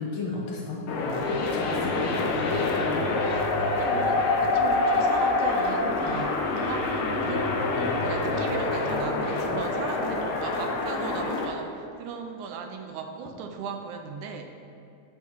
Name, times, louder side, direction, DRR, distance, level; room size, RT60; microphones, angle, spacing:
voice 1, 0.0-2.2 7.7-8.0, left 3 dB, 70° left, -3 dB, 2.8 m, -35 dB
sound 1, 0.9-11.5, left 3 dB, 90° left, 1.1 m, -26 dB
voice 2, 3.3-14.4, right 5 dB, 80° right, 4 dB, 2.0 m, -37 dB
9.3 x 4.4 x 5.6 m, 2.6 s
omnidirectional pair, 3.7 m